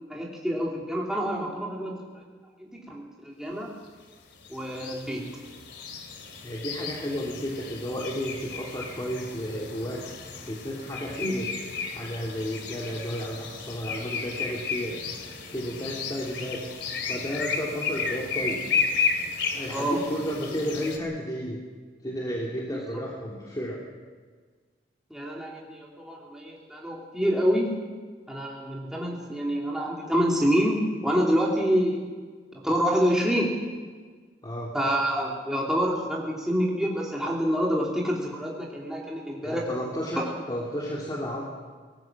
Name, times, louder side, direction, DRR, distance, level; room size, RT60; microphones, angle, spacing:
voice 1, 0.1-2.2 2.6-3.7 4.5-5.3 19.7-20.0 22.9-23.0 25.1-27.8 28.3-32.1 32.6-33.6 34.7-39.7 40.2-40.3, equal, 5° right, -4 dB, 2.7 m, -27 dB
sound 1, 4.1-21.0, left 5 dB, 80° left, 3.0 m, -33 dB
voice 2, 6.4-11.5 11.9-15.0 15.5-18.6 19.5-21.6 22.0-23.8 34.4-34.7 39.4-40.2 40.5-41.5, equal, 25° left, -4 dB, 3.1 m, -32 dB
24.0 x 19.0 x 6.2 m, 1.5 s
head